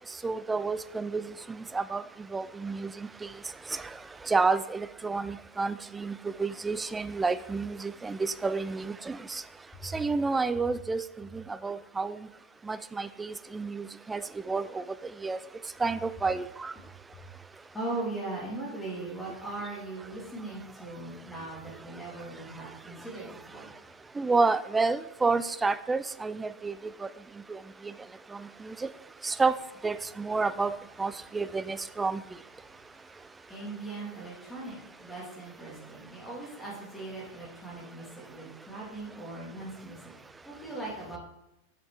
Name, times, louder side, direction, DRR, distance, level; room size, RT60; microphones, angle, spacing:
voice 1, 0.2-1.2 1.7-2.0 2.3-2.9 3.7-3.8 4.3-9.4 9.9-11.0 11.6-12.2 12.7-13.3 13.5-14.2 14.5-14.8 15.2-15.4 15.8-16.7 24.2-26.9 27.5-27.6 29.2-29.6 29.8-32.2, right 4 dB, 10° right, 15 dB, 0.3 m, -29 dB
voice 2, 17.7-23.7 32.6-33.2 33.4-40.1 40.4-41.2, right 2 dB, 10° left, -4 dB, 2.4 m, -39 dB
7.1 x 5.1 x 4.7 m, 0.89 s
figure-of-eight pair, 90°, 0 cm